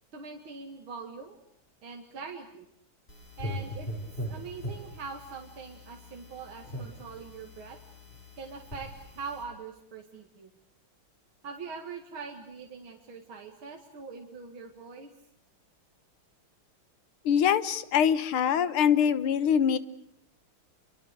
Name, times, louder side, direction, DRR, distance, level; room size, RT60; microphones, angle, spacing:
voice 1, 0.1-1.4 1.8-2.7 3.4-3.9 4.3-7.8 8.4-10.5 11.4-15.1, right 5 dB, 75° right, 3 dB, 2.9 m, -42 dB
sound 1, 3.1-9.4, equal, 25° left, 6.2 m, -41 dB
voice 2, 17.3-19.8, left 8 dB, 90° left, 15 dB, 2.0 m, -24 dB
28.5 x 24.0 x 6.6 m, 0.77 s
omnidirectional pair, 2.3 m